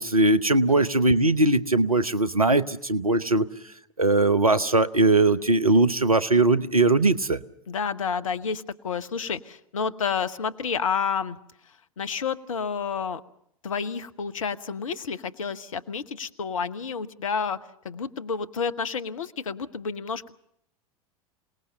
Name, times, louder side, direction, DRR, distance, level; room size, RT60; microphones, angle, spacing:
voice 1, 0.0-3.5 4.0-7.4, right 2 dB, 85° right, 14 dB, 0.9 m, -20 dB
voice 2, 7.7-11.4 12.0-13.2 13.6-17.6 17.8-20.2, left 6 dB, 70° left, 11 dB, 1.1 m, -30 dB
27.5 x 19.0 x 6.8 m, 0.74 s
figure-of-eight pair, 85°, 18 cm